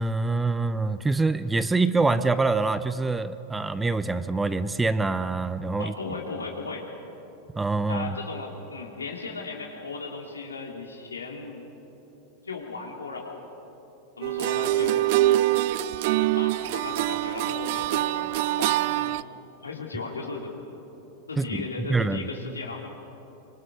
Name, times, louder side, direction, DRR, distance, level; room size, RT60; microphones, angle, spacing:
voice 1, 0.0-5.9 7.6-8.2 21.4-22.2, right 3 dB, 10° right, 14 dB, 0.8 m, -25 dB
voice 2, 5.8-6.9 7.9-11.7 12.4-13.5 14.2-15.1 16.2-19.2 19.6-20.6 21.3-22.9, left 4 dB, 85° left, 1 dB, 2.8 m, -36 dB
sound 1, 14.2-19.2, right 16 dB, 55° right, 0.4 m, -24 dB
25.0 x 24.5 x 5.2 m, 3.0 s
figure-of-eight pair, 90°, 0 cm